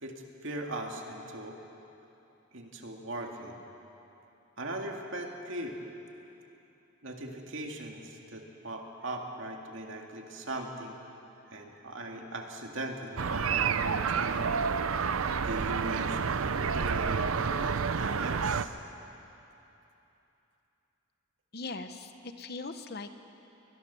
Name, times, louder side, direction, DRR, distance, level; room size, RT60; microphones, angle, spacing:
voice 1, 0.0-1.6 2.5-3.6 4.6-5.8 7.0-11.1 11.5-14.4 15.4-18.7, right 1 dB, 65° right, 2 dB, 2.2 m, -39 dB
sound 1, 13.2-18.7, right 6 dB, 80° right, 0.6 m, -29 dB
voice 2, 21.5-23.2, left 3 dB, 50° left, 8 dB, 1.0 m, -40 dB
21.5 x 21.5 x 7.0 m, 3.0 s
head